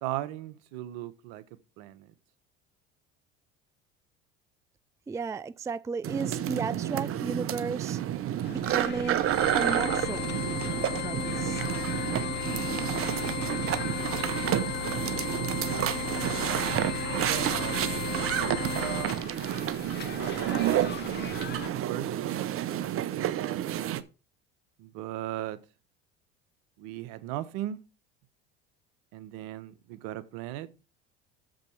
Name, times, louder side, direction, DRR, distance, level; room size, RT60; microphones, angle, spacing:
voice 1, 0.0-1.4 1.8-2.1 15.1-15.9 16.9-19.2 20.4-21.6 21.9-23.6 24.8-25.6 26.8-27.8 29.1-30.7, right 13 dB, 75° right, 1.0 m, -38 dB
voice 2, 5.1-8.0 8.5-9.2 9.5-10.3 11.0-11.6, right 4 dB, 10° right, 0.4 m, -34 dB
sound 1, 6.0-24.0, right 11 dB, 45° right, 0.8 m, -30 dB
sound 2, 8.4-21.7, left 10 dB, 35° left, 0.6 m, -42 dB
sound 3, 9.2-19.2, left 6 dB, 55° left, 2.1 m, -35 dB
7.3 x 5.2 x 7.0 m
hypercardioid pair, 80°, 30 cm